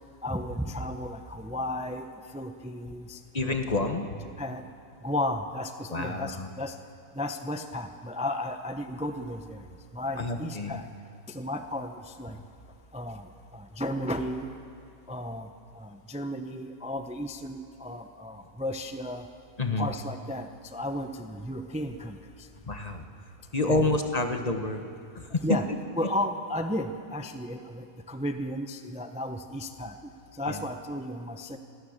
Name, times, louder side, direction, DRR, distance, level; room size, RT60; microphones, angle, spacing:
voice 1, 0.2-2.1 2.3-3.2 4.4-4.6 5.0-6.7 7.1-9.6 9.9-10.8 11.3-12.4 12.9-13.3 13.5-14.5 15.1-15.5 15.7-19.3 19.8-22.2 23.7-24.0 25.4-25.6 26.0-29.9 30.4-31.6, left 1 dB, 10° right, 7 dB, 0.4 m, -34 dB
voice 2, 3.3-4.2 5.9-6.5 10.2-10.8 19.6-19.9 22.7-23.1 23.5-24.9 25.1-25.4 30.5-30.6, left 2 dB, 25° left, 5 dB, 1.1 m, -28 dB
25.0 x 17.5 x 6.6 m, 2.4 s
omnidirectional pair, 1.8 m